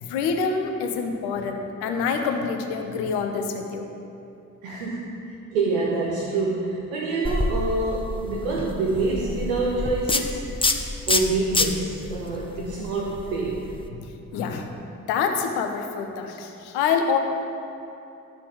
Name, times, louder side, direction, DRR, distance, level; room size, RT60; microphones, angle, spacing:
voice 1, 0.0-3.9 4.7-4.9 12.2-12.3 13.9-14.7 15.1-17.2, left 5 dB, 75° left, 4 dB, 0.8 m, -27 dB
voice 2, 4.6-10.4 11.1-13.7, right 3 dB, 85° right, -3 dB, 0.7 m, -26 dB
sound 1, 7.2-13.9, left 3 dB, 15° left, 0.6 m, -28 dB
12.0 x 4.3 x 4.8 m, 2.7 s
hypercardioid pair, 40°, 40 cm